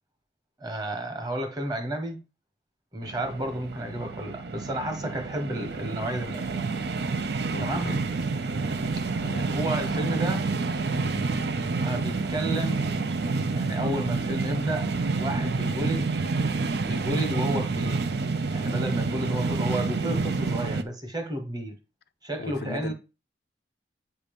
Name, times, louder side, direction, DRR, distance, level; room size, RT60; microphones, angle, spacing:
voice 1, 0.6-2.2 2.9-6.6 7.6-7.9 9.0-9.1 9.5-10.4 11.8-12.8 13.5-16.1 16.8-18.0 18.5-21.7 22.2-22.9, right 1 dB, 25° right, 1.1 m, -31 dB
sound 1, 3.0-20.8, right 3 dB, 70° right, 0.5 m, -28 dB
voice 2, 7.5-8.0 9.2-9.5 22.4-22.9, left 3 dB, 65° left, 0.5 m, -37 dB
8.2 x 2.7 x 5.2 m
head